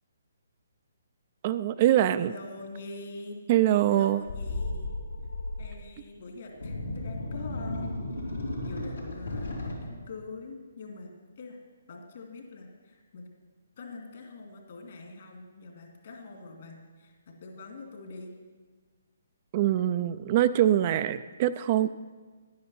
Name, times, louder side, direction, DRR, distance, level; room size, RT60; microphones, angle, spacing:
voice 1, 1.4-2.3 3.5-4.2 19.5-21.9, right 12 dB, 35° right, 12 dB, 0.4 m, -24 dB
voice 2, 2.2-3.4 3.9-4.9 5.6-8.0 8.6-11.6 11.9-13.2 13.8-18.3, left 3 dB, 55° left, 1 dB, 2.4 m, -44 dB
Large monster breathing growls and screeches, 4.3-5.7 6.5-9.8, left 2 dB, 90° left, 3.6 m, -34 dB
10.5 x 9.5 x 5.6 m, 1.4 s
figure-of-eight pair, 140°, 0 cm